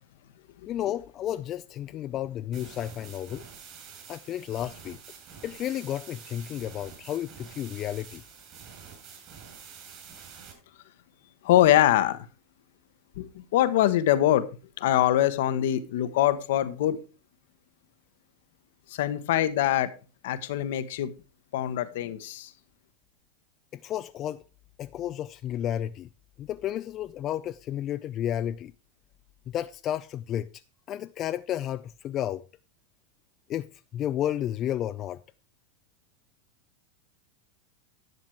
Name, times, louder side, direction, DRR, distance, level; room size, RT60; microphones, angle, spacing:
voice 1, 0.7-3.5 4.1-5.0 5.4-8.2 23.8-24.4 24.8-26.1 26.4-28.7 29.5-30.5 30.9-32.4 33.5-33.7 33.9-35.2, left 11 dB, 40° left, 0.4 m, -32 dB
sound 1, 2.5-10.5, right 6 dB, 45° right, 5.5 m, -47 dB
voice 2, 11.4-12.3 13.2-14.5 14.8-17.0 18.9-19.9 20.2-21.1 21.5-22.5, left 12 dB, 70° left, 1.2 m, -23 dB
11.0 x 7.5 x 4.7 m
hypercardioid pair, 100°, 0 cm